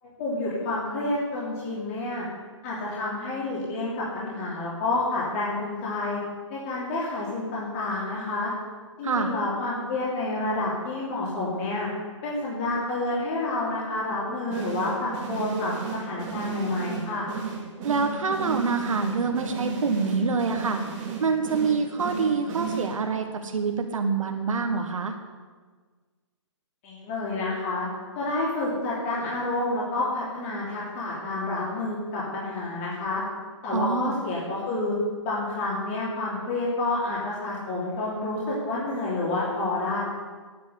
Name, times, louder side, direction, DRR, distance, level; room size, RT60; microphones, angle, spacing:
voice 1, 0.0-2.2 2.6-6.2 6.5-8.5 9.0-11.9 12.2-17.3 26.8-27.9 28.1-33.2 33.6-35.0 35.2-40.0, left 2 dB, 25° left, -7 dB, 3.0 m, -29 dB
sound 1, 14.5-23.3, right 5 dB, 20° right, 2.4 m, -34 dB
voice 2, 17.8-20.8 21.2-25.1 33.7-34.1, right 4 dB, 85° right, 4 dB, 1.6 m, -26 dB
11.5 x 9.6 x 8.1 m, 1.5 s
hypercardioid pair, 170°, 16 cm